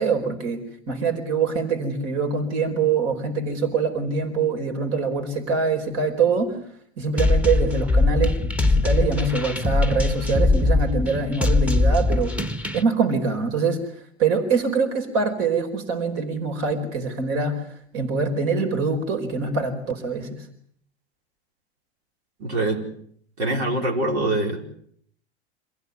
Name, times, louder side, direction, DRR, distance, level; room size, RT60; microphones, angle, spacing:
voice 1, 0.0-6.6 7.0-12.4 12.7-13.9 14.2-17.7 17.9-20.5, right 4 dB, 50° right, 6 dB, 4.6 m, -24 dB
sound 1, 7.2-12.8, left 3 dB, 5° right, 1.4 m, -21 dB
voice 2, 22.4-22.9 23.4-24.6, right 2 dB, 75° right, 1 dB, 5.0 m, -24 dB
27.0 x 16.5 x 9.4 m, 0.65 s
hypercardioid pair, 105°, 33 cm